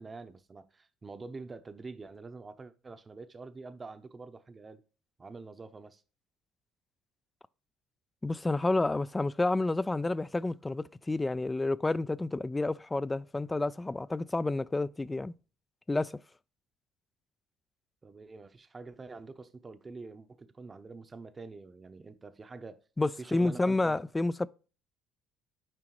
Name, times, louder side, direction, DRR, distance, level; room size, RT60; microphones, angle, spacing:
voice 1, 0.0-4.8 5.2-6.0 18.0-22.8 23.2-24.0, right 3 dB, 25° right, 0.7 m, -46 dB
voice 2, 8.2-15.3 15.9-16.2 23.0-24.5, left 2 dB, 15° left, 0.3 m, -30 dB
7.6 x 4.9 x 3.0 m
hypercardioid pair, 70°, 0 cm